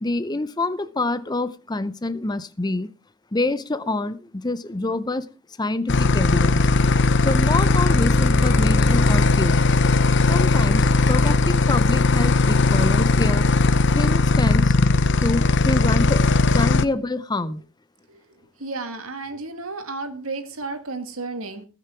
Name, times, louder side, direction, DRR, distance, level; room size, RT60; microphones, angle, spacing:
voice 1, 0.0-2.9 3.3-5.3 5.6-6.7 7.2-9.6 10.3-13.5 13.9-14.8 15.2-16.2 16.5-17.6, left 2 dB, 20° left, 0.6 m, -26 dB
sound 1, 5.9-16.8, left 3 dB, 55° left, 0.8 m, -18 dB
voice 2, 18.6-21.6, right 3 dB, 85° right, 2.2 m, -32 dB
20.0 x 6.8 x 4.5 m
head